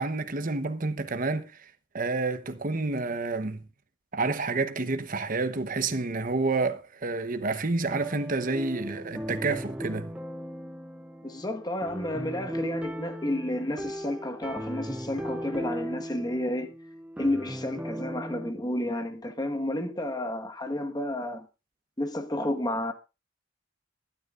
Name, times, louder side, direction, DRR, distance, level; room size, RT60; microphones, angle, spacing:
voice 1, 0.0-3.7 4.1-10.1, right 3 dB, 45° right, 0.9 m, -29 dB
sound 1, 7.8-18.5, equal, 5° right, 0.6 m, -37 dB
voice 2, 11.2-16.7 17.2-21.5 22.0-22.9, left 1 dB, 20° left, 1.4 m, -31 dB
22.5 x 9.7 x 2.5 m
head